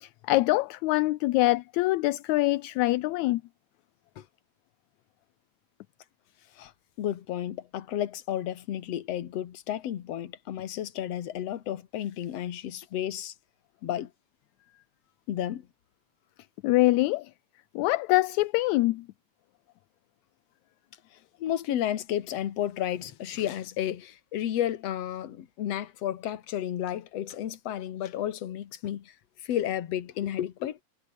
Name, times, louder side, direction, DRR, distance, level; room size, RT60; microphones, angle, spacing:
voice 1, 0.0-3.4 16.6-17.3 17.8-19.1, left 19 dB, 80° left, 1.9 m, -24 dB
voice 2, 7.0-13.3 13.8-14.1 15.3-15.7 21.4-29.1 29.4-30.8, left 11 dB, 60° left, 2.4 m, -32 dB
omnidirectional pair, 3.4 m